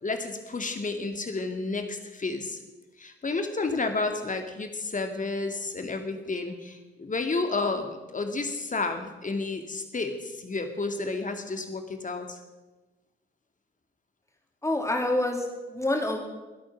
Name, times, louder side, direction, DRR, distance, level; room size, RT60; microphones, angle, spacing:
voice 1, 0.0-2.6 3.0-12.4, left 3 dB, 25° left, 6 dB, 2.3 m, -31 dB
voice 2, 14.6-16.2, left 1 dB, 10° left, 2 dB, 3.4 m, -27 dB
22.0 x 8.6 x 6.1 m, 1.2 s
figure-of-eight pair, 45°, 29 cm